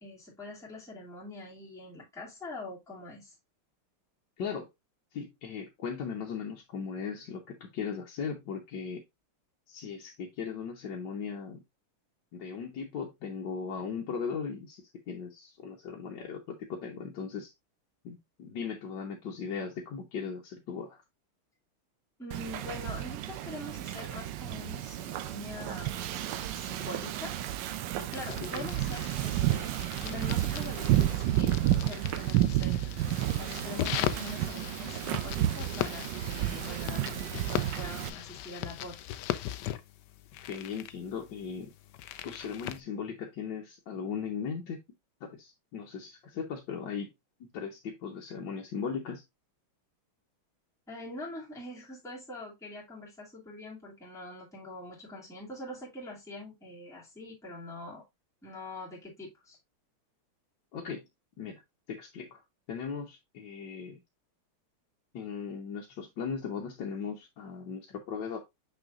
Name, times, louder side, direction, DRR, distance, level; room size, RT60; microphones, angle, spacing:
voice 1, 0.0-3.4 22.2-27.4 28.0-29.7 30.0-32.9 33.2-39.0 50.9-58.0 58.4-59.6, left 2 dB, ahead, 2.2 m, -44 dB
voice 2, 5.1-9.0 9.7-11.6 12.3-17.5 18.0-21.0 28.4-28.7 40.4-41.7 42.2-44.8 45.2-47.1 47.5-49.2 60.7-61.1 61.4-61.6 61.9-62.4 62.7-64.0 65.1-68.4, left 6 dB, 60° left, 1.5 m, -38 dB
Wind / Ocean, 22.3-38.1, right 13 dB, 70° right, 1.2 m, -31 dB
sound 1, 28.1-42.8, left 12 dB, 80° left, 1.0 m, -39 dB
6.2 x 6.1 x 2.4 m
omnidirectional pair, 2.4 m